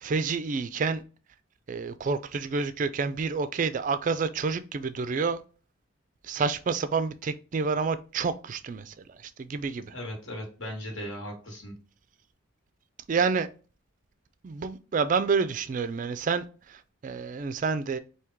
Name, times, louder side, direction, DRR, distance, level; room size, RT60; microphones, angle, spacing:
voice 1, 0.0-1.0 1.7-5.4 6.2-9.9 13.1-13.5 14.4-18.0, right 5 dB, 40° right, 0.3 m, -29 dB
voice 2, 9.9-11.7, equal, 70° left, 1.7 m, -37 dB
4.5 x 2.8 x 3.5 m
head